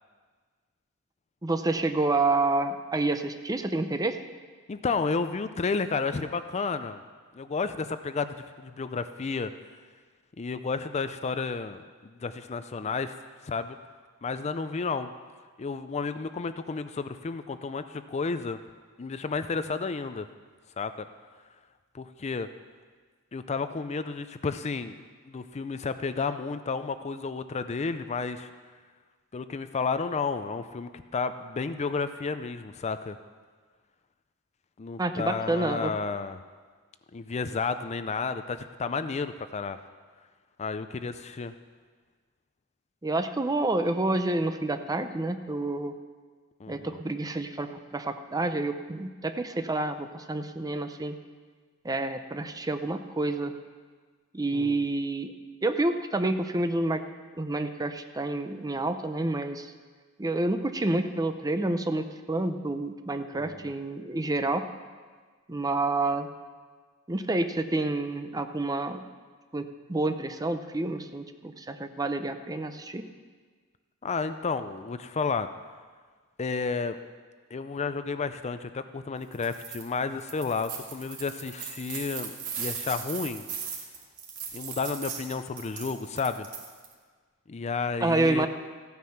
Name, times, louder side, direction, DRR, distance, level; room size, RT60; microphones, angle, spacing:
voice 1, 1.4-4.2 35.0-35.9 43.0-45.9 46.7-51.1 51.8-53.5 54.3-55.3 55.6-57.0 57.4-59.7 60.2-64.7 65.5-66.3 67.1-69.0 69.5-73.0 88.0-88.5, right 2 dB, 15° right, 8 dB, 0.6 m, -28 dB
voice 2, 4.7-7.0 7.3-9.5 10.4-13.1 13.4-13.8 14.2-15.1 15.6-18.6 19.0-20.3 20.8-21.1 21.9-22.5 23.3-28.5 29.3-33.2 34.8-36.4 37.1-39.8 40.6-41.5 46.6-47.0 54.5-54.8 63.4-63.7 74.0-75.5 76.4-77.0 77.5-83.5 84.5-86.5 87.5-88.5, left 4 dB, 30° left, 11 dB, 0.4 m, -32 dB
sound 1, 79.3-79.8 80.2-86.9, right 6 dB, 80° right, 1.9 m, -38 dB
14.5 x 9.5 x 5.8 m, 1.5 s
head